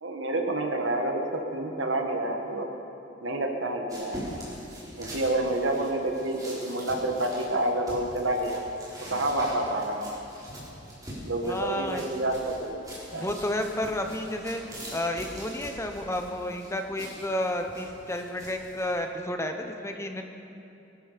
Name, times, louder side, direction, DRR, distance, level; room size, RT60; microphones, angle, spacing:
voice 1, 0.0-2.7 3.2-4.3 5.0-8.6 9.1-10.1 11.2-12.8 13.1-13.3, right 1 dB, 75° right, 3 dB, 1.8 m, -28 dB
sound 1, 3.9-19.0, right 1 dB, 20° right, 4.7 m, -43 dB
voice 2, 11.4-12.1 13.1-14.6 14.9-20.2, left 1 dB, 15° left, 5 dB, 0.9 m, -31 dB
22.5 x 12.5 x 5.2 m, 2.8 s
head